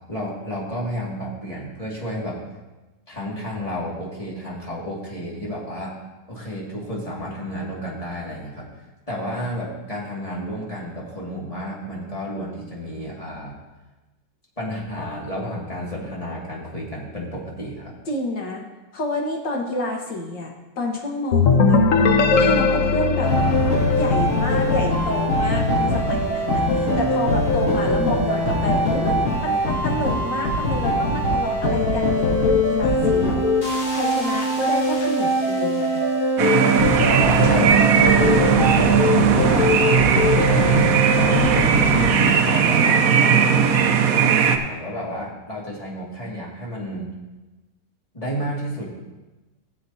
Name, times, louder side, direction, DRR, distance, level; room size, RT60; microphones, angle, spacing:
voice 1, 0.1-2.4 3.1-6.0 6.3-8.7 9.1-13.6 14.6-17.9 27.6-27.7 36.8-39.8 40.4-47.1 48.1-48.9, equal, 20° left, -5 dB, 2.2 m, -31 dB
voice 2, 18.1-18.6 18.9-21.8 22.3-23.4 23.9-33.5 33.9-36.0, left 1 dB, 80° left, 0 dB, 2.1 m, -28 dB
sound 1, 21.3-25.0, left 5 dB, 60° left, 0.9 m, -19 dB
sound 2, 23.2-42.1, left 1 dB, 45° left, 2.5 m, -21 dB
sound 3, 36.4-44.6, right 7 dB, 60° right, 1.0 m, -18 dB
16.5 x 7.6 x 2.8 m, 1.1 s
omnidirectional pair, 1.9 m